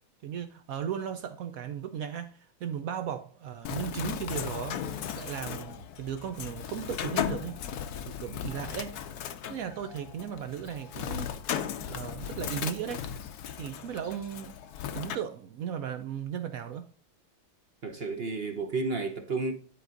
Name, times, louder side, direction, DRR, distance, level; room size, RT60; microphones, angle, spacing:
voice 1, 0.2-7.6 8.1-9.0 9.5-11.3 11.9-13.1 13.6-14.6 14.9-16.9, right 8 dB, 90° right, 0.7 m, -36 dB
Bird, 3.6-15.1, left 9 dB, 65° left, 1.0 m, -36 dB
voice 2, 17.8-19.5, right 3 dB, 50° right, 0.7 m, -31 dB
10.0 x 4.7 x 3.8 m
omnidirectional pair, 2.2 m